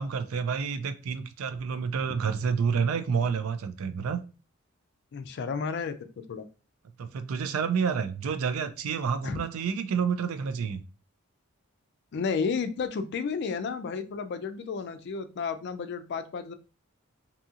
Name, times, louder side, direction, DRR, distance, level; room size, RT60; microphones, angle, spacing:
voice 1, 0.0-4.2 7.0-10.8, right 6 dB, 85° right, 10 dB, 0.4 m, -29 dB
voice 2, 5.1-6.5 9.2-9.4 12.1-16.5, left 5 dB, 55° left, 10 dB, 0.4 m, -32 dB
2.7 x 2.7 x 2.4 m, 0.33 s
head